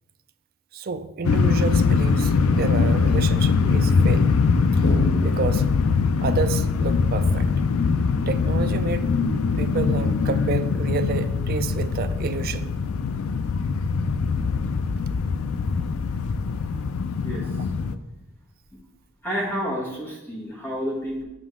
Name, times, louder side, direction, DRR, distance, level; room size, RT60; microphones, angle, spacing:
voice 1, 0.7-4.4 4.7-4.8 5.2-5.7 6.2-7.5 8.3-9.1 9.6-12.7, right 4 dB, 40° right, 10 dB, 0.4 m, -29 dB
sound 1, 1.2-17.9, left 5 dB, 70° left, 0.4 m, -22 dB
sound 2, 2.4-3.0 4.8-5.6, left 1 dB, 50° left, 1.1 m, -29 dB
voice 2, 19.2-21.2, equal, 10° left, -5 dB, 1.3 m, -29 dB
7.5 x 6.1 x 3.6 m, 1.0 s
head